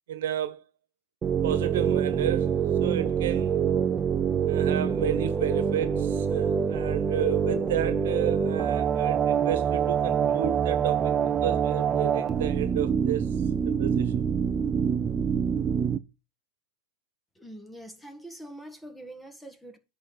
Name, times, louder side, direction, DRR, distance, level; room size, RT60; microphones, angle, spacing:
voice 1, 0.1-0.6 1.4-3.6 4.5-13.3 13.8-14.3, right 10 dB, 80° right, 1.2 m, -32 dB
sound 1, 1.2-16.0, right 7 dB, 25° right, 0.6 m, -25 dB
voice 2, 17.3-19.8, right 1 dB, 5° left, 1.5 m, -44 dB
10.0 x 3.9 x 6.4 m
supercardioid pair, 130°, 0 cm